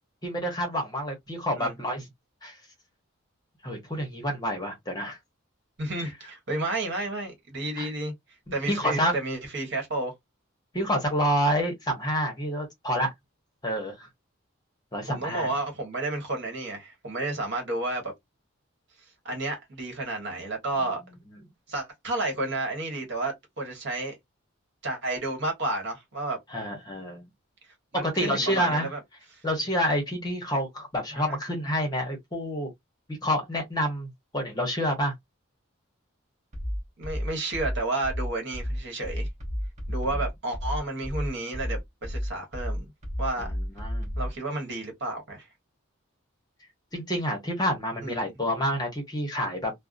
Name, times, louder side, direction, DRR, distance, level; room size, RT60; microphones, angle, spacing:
voice 1, 0.2-2.1 2.4-2.6 3.6-5.2 7.8-7.9 8.7-9.1 10.7-13.1 13.6-14.1 14.9-15.5 26.5-27.3 27.9-28.9 29.4-32.7 33.1-35.1 43.4-43.5 43.8-44.1 46.9-49.7, equal, 20° left, 0.8 m, -28 dB
voice 2, 5.8-8.1 8.5-10.1 15.1-18.1 19.2-21.0 21.7-24.2 24.8-26.4 27.9-29.0 31.1-31.4 37.0-39.3 39.9-42.9 43.2-43.5 44.2-45.5 48.0-48.3, right 2 dB, 55° right, 1.2 m, -31 dB
sound 1, 36.5-44.4, equal, 35° right, 0.9 m, -32 dB
2.5 x 2.0 x 2.4 m
head